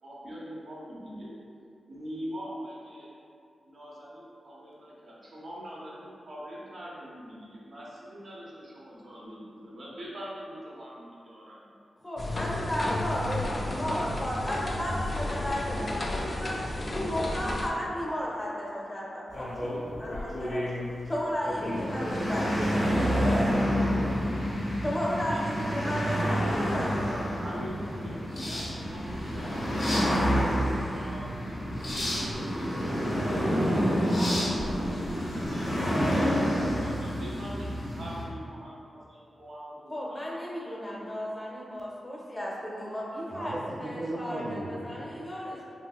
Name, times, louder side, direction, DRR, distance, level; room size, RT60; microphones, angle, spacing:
voice 1, 0.0-1.4 1.9-3.1 3.6-11.7 25.3-25.4 27.0-30.2 30.8-33.3 33.8-37.7 38.0-41.1, equal, 70° right, -7 dB, 0.9 m, -43 dB
voice 2, 12.0-16.6 16.9-20.7 21.1-22.8 24.8-27.1 39.9-45.6, equal, 25° left, -4 dB, 0.7 m, -34 dB
sound 1, 12.2-17.7, left 1 dB, 45° left, 0.4 m, -32 dB
sound 2, 19.3-35.5, left 1 dB, 65° left, 1.0 m, -37 dB
sound 3, 21.4-38.2, equal, 80° left, 1.4 m, -28 dB
voice 3, 23.1-24.3 43.3-45.2, right 1 dB, 50° right, -6 dB, 0.4 m, -35 dB
3.8 x 2.7 x 2.4 m, 2.5 s
cardioid pair, 55°, 0 cm